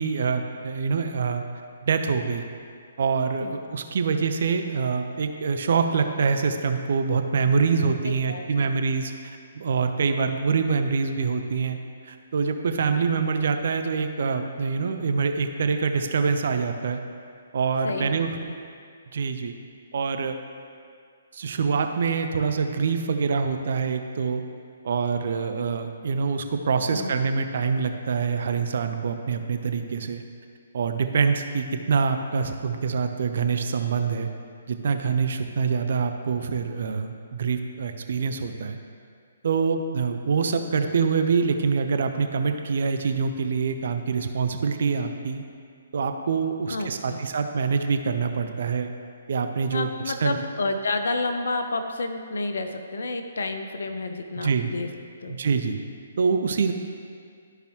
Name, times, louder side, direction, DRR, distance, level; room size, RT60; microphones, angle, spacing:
voice 1, 0.0-1.4 1.8-2.4 3.0-9.1 9.5-11.8 12.1-17.0 17.5-18.3 19.1-19.5 19.9-20.4 21.3-24.4 24.8-30.2 30.7-34.3 34.7-38.8 39.4-45.4 45.9-48.9 49.3-50.4 54.4-54.7 55.3-55.9 56.2-56.7, right 5 dB, 55° right, 6 dB, 0.6 m, -25 dB
voice 2, 8.0-8.7 17.8-18.1 18.5-18.6 26.9-27.1 46.7-47.2 49.7-54.9 55.2-55.4, left 3 dB, 65° left, 6 dB, 0.7 m, -30 dB
13.0 x 4.9 x 3.1 m, 2.2 s
figure-of-eight pair, 130°, 0 cm